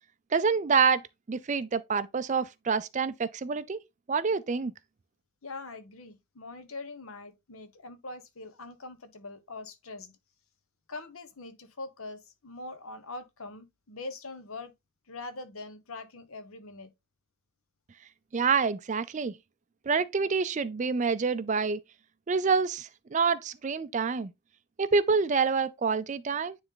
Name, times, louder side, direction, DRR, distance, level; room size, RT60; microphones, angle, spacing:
voice 1, 0.3-3.8 4.1-4.7 18.3-19.4 19.9-21.8 22.3-24.3 24.8-26.6, right 5 dB, 35° right, 0.4 m, -27 dB
voice 2, 5.4-10.2 10.9-14.7 15.1-16.9, left 3 dB, 70° left, 1.1 m, -43 dB
9.6 x 3.3 x 3.8 m
head